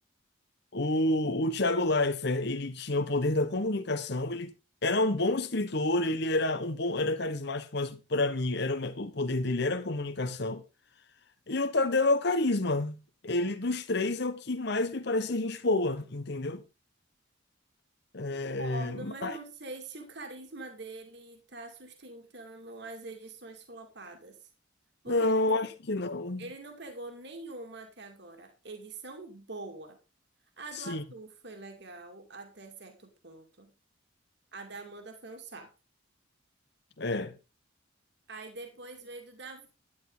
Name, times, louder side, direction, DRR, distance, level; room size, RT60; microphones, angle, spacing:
voice 1, 0.7-4.5 4.8-10.6 11.5-12.9 13.2-16.6 18.1-19.4 25.1-26.5 30.7-31.0 37.0-37.3, left 2 dB, 55° left, 1.1 m, -29 dB
voice 2, 18.3-24.5 25.0-25.3 26.4-30.0 30.6-33.7 34.5-35.7 38.3-39.7, right 2 dB, 55° right, 2.5 m, -44 dB
11.5 x 10.5 x 4.0 m
head